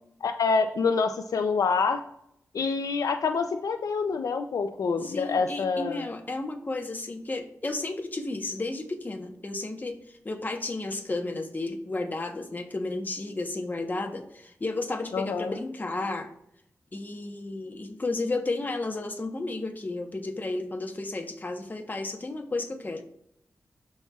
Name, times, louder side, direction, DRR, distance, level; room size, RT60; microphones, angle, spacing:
voice 1, 0.2-2.0 2.5-6.1 15.1-15.5, left 5 dB, 80° left, 7 dB, 0.5 m, -26 dB
voice 2, 5.0-16.3 16.9-23.0, left 2 dB, 30° left, 4 dB, 0.9 m, -33 dB
12.5 x 4.3 x 2.4 m, 0.74 s
wide cardioid pair, 105°, 6 cm